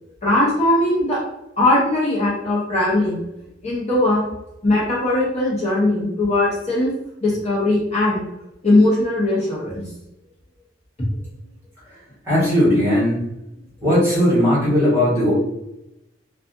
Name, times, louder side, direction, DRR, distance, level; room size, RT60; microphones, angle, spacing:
voice 1, 0.2-1.2 1.6-3.2 3.6-4.3 4.6-6.9 7.2-8.2 8.6-9.8, left 1 dB, 35° left, -6 dB, 0.8 m, -19 dB
voice 2, 12.3-13.2 13.8-15.3, equal, 15° right, -10 dB, 1.3 m, -17 dB
2.5 x 2.4 x 2.5 m, 0.87 s
head